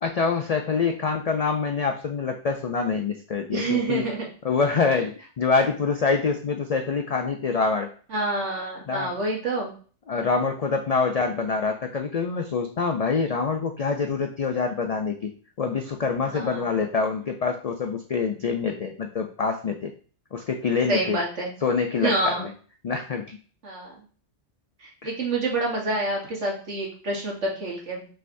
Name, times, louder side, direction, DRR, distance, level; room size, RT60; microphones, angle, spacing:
voice 1, 0.0-4.1 4.4-7.9 8.9-9.1 10.1-15.3 15.6-19.9 20.3-21.2 21.6-22.5 22.8-23.4 25.0-25.1, left 5 dB, 80° left, 4 dB, 0.3 m, -25 dB
voice 2, 3.5-4.3 8.1-9.7 16.2-16.6 20.9-21.5 22.0-22.5 23.6-23.9 24.8-28.1, right 2 dB, 75° right, -2 dB, 1.7 m, -27 dB
5.6 x 3.2 x 2.6 m, 0.41 s
omnidirectional pair, 1.2 m